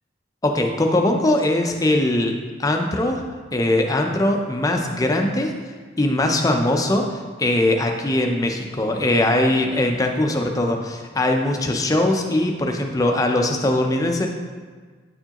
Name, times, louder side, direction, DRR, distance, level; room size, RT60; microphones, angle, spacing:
voice 1, 0.4-2.3 2.6-3.2 3.5-5.5 6.0-14.3, left 1 dB, 15° left, 3 dB, 0.4 m, -21 dB
8.8 x 4.5 x 2.9 m, 1.5 s
head